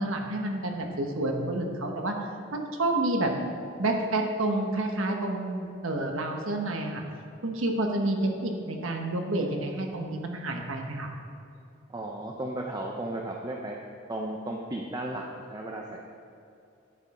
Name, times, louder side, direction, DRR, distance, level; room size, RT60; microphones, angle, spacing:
voice 1, 0.0-2.1 2.5-3.3 3.8-7.0 7.4-11.1, right 2 dB, 80° right, 2 dB, 1.2 m, -29 dB
voice 2, 11.9-13.8 14.1-16.0, right 1 dB, 20° right, 0 dB, 0.6 m, -35 dB
9.9 x 8.7 x 4.3 m, 2.7 s
head